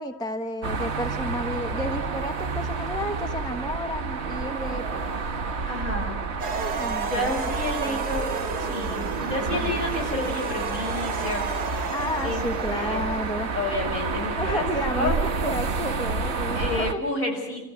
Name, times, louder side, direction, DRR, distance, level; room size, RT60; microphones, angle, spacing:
voice 1, 0.0-5.2 6.6-7.3 7.6-8.0 11.9-13.5 14.4-17.0, equal, 5° left, 6 dB, 1.1 m, -32 dB
sound 1, 0.6-16.9, right 4 dB, 45° right, 1.4 m, -30 dB
voice 2, 5.7-6.2 7.1-8.3 8.6-11.4 12.2-12.4 12.7-13.0 13.5-14.7 14.9-15.2 16.6-17.6, left 2 dB, 60° left, 0 dB, 6.9 m, -30 dB
sound 2, 6.4-14.6, right 5 dB, 80° right, 2.3 m, -33 dB
28.5 x 14.5 x 9.4 m, 1.0 s
omnidirectional pair, 1.6 m